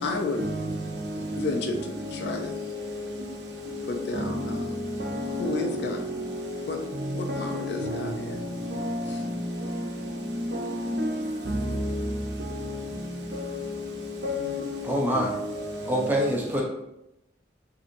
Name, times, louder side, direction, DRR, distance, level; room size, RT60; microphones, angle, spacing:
voice 1, 0.0-0.4 1.2-2.5 3.9-4.7 5.4-6.1 6.7-6.8 7.1-8.4 9.1-9.2 14.4-14.5, left 3 dB, 60° left, 0.4 m, -32 dB
voice 2, 7.5-7.9 10.5-11.1 11.5-11.9 14.2-14.6 15.2-15.3, left 1 dB, 60° right, 0.6 m, -29 dB
voice 3, 14.8-15.3 15.8-16.6, equal, 10° right, 0.5 m, -25 dB
3.8 x 2.7 x 2.6 m
head